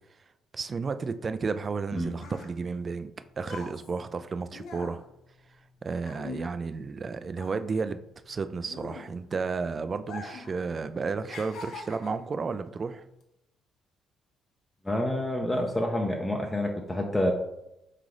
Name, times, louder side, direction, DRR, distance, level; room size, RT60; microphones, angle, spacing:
voice 1, 0.5-5.0 5.8-8.0 8.3-13.0, right 4 dB, 40° right, 11 dB, 0.3 m, -32 dB
sound 1, 2.2-7.0 7.3-9.5 10.0-10.6 10.8-12.3 13.0-13.2, left 4 dB, 70° left, 0.8 m, -43 dB
voice 2, 14.8-17.3, left 1 dB, 15° left, 1 dB, 0.6 m, -28 dB
3.6 x 3.2 x 3.8 m, 0.86 s
supercardioid pair, 75°, 0 cm